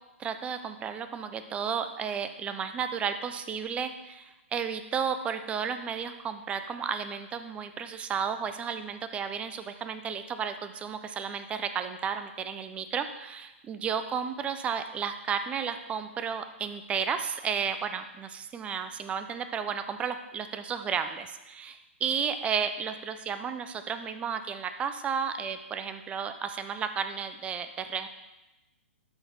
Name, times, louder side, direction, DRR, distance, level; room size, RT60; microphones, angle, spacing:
voice 1, 0.2-28.1, right 7 dB, 15° right, 9 dB, 0.6 m, -33 dB
12.0 x 6.0 x 3.6 m, 1.0 s
hypercardioid pair, 125°, 7 cm